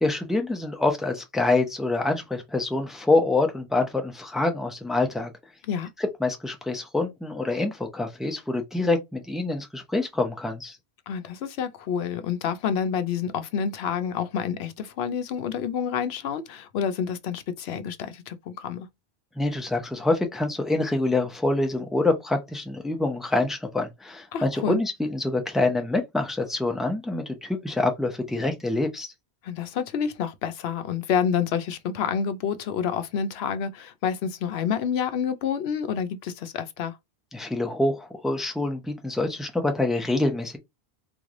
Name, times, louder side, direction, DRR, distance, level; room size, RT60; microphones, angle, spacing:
voice 1, 0.0-5.3 6.0-10.8 19.4-29.1 37.3-40.6, left 2 dB, ahead, 0.5 m, -26 dB
voice 2, 11.1-18.9 24.3-24.8 29.4-37.0, left 7 dB, 80° left, 0.8 m, -28 dB
3.7 x 3.1 x 2.5 m
omnidirectional pair, 1.1 m